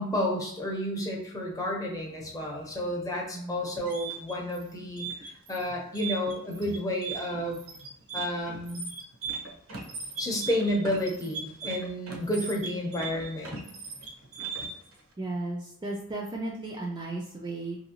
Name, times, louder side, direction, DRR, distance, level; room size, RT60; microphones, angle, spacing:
voice 1, 0.0-7.6 8.1-8.8 10.2-13.6, left 1 dB, 15° left, -1 dB, 0.7 m, -31 dB
voice 2, 3.3-3.6 15.2-17.8, right 2 dB, 20° right, -2 dB, 0.3 m, -35 dB
sound 1, 3.6-14.9, right 5 dB, 65° right, 0.6 m, -38 dB
2.7 x 2.6 x 2.8 m, 0.70 s
head